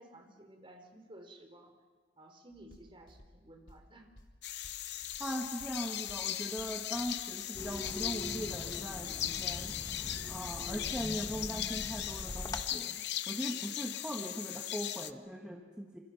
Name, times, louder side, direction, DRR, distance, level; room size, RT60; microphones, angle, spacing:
voice 1, 0.0-1.7 2.2-4.1, right 1 dB, 30° right, 4 dB, 3.8 m, -55 dB
sound 1, 2.5-8.7, equal, 85° left, 3.5 m, -59 dB
sound 2, 4.4-15.1, left 12 dB, 65° left, 0.8 m, -38 dB
voice 2, 5.2-9.7 10.3-16.0, equal, 5° right, 1 dB, 1.5 m, -40 dB
sound 3, 7.5-12.6, left 1 dB, 20° left, 1.4 m, -43 dB
27.0 x 27.0 x 5.9 m, 1.4 s
head